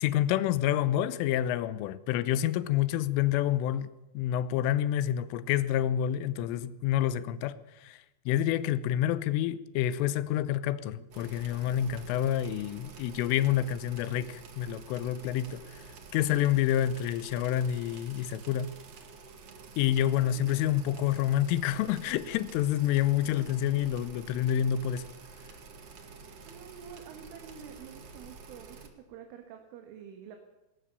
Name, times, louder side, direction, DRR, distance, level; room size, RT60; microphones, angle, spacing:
voice 1, 0.0-7.6 7.8-8.0 8.3-15.6 16.1-18.7 19.8-25.1, left 11 dB, 85° left, 3.4 m, -28 dB
sound 1, 11.1-28.9, right 4 dB, 50° right, 2.0 m, -49 dB
voice 2, 20.1-20.7 26.5-30.4, right 8 dB, 80° right, 4.2 m, -48 dB
20.5 x 19.0 x 6.8 m
omnidirectional pair, 5.7 m